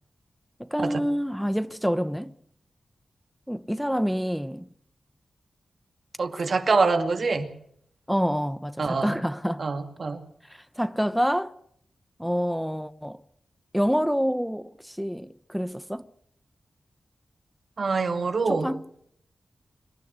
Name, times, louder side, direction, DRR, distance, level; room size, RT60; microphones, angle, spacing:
voice 1, 0.6-2.3 3.5-4.7 8.1-9.6 10.5-11.5 12.2-13.2 13.7-16.0 18.5-18.8, equal, ahead, 0.9 m, -27 dB
voice 2, 6.2-7.5 8.8-9.1 9.6-10.2 17.8-18.7, right 4 dB, 65° right, 2.3 m, -25 dB
26.5 x 11.0 x 9.5 m
cardioid pair, 50°, 0 cm